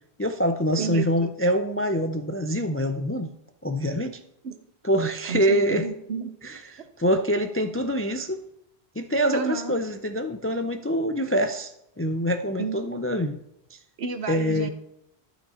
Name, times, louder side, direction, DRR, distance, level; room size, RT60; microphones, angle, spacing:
voice 1, 0.2-3.3 3.6-4.2 4.8-5.9 6.4-8.4 9.0-11.7 12.0-13.4 13.7-13.8 14.3-14.7, equal, 20° left, 7 dB, 0.3 m, -25 dB
voice 2, 0.8-1.3 4.4-4.5 5.3-6.3 6.8-6.9 9.3-9.8 12.6-13.1 14.0-14.7, right 5 dB, 75° right, 8 dB, 1.2 m, -31 dB
12.0 x 5.9 x 4.3 m, 0.78 s
omnidirectional pair, 1.1 m